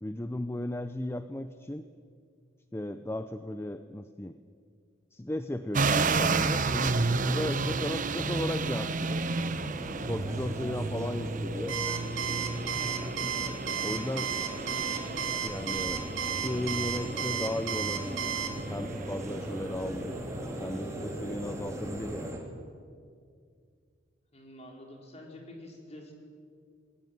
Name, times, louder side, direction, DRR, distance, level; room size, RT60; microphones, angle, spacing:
voice 1, 0.0-1.8 2.7-4.4 5.1-6.9 7.2-9.2 10.1-11.8 13.8-14.3 15.4-16.0 16.4-18.2 18.7-20.2 20.6-22.3, left 1 dB, 15° left, 10 dB, 0.6 m, -35 dB
sound 1, 5.7-22.3, right 4 dB, 45° right, 0.9 m, -33 dB
sound 2, 6.4-22.4, equal, 15° right, 3.4 m, -39 dB
Alarm, 11.7-18.5, right 8 dB, 90° right, 2.3 m, -32 dB
voice 2, 24.3-26.1, left 1 dB, 35° left, 1 dB, 4.5 m, -47 dB
21.0 x 18.0 x 9.4 m, 2.2 s
head